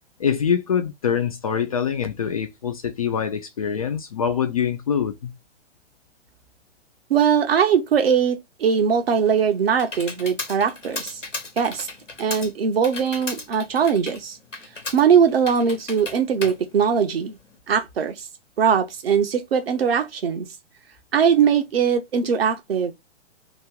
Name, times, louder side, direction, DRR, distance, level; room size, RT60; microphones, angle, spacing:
voice 1, 0.2-5.3, left 7 dB, 30° left, 0.4 m, -24 dB
voice 2, 7.1-11.2 11.6-11.9 12.2-14.4 14.9-17.4 17.7-18.3 18.6-20.5 21.1-22.9, right 7 dB, 55° right, 0.9 m, -20 dB
Computer keyboard, 9.0-17.6, left 3 dB, 85° left, 1.1 m, -36 dB
3.0 x 2.6 x 3.5 m
figure-of-eight pair, 115°, 36 cm